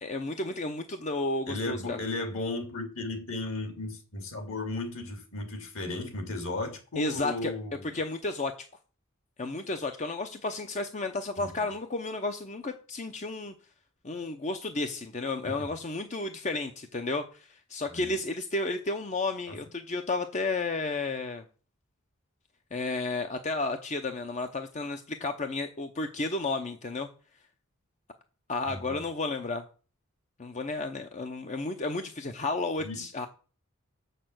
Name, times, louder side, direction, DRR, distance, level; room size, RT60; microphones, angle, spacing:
voice 1, 0.0-2.0 7.0-7.5 7.9-8.5 9.4-13.5 14.0-21.4 22.7-27.1 28.5-29.6 30.4-33.3, left 3 dB, 35° left, 0.7 m, -32 dB
voice 2, 1.5-7.8 11.4-11.6 15.4-15.5 17.9-18.2 19.5-19.6 28.7-29.0 32.8-33.0, left 2 dB, 65° left, 2.7 m, -35 dB
6.7 x 6.6 x 7.7 m
head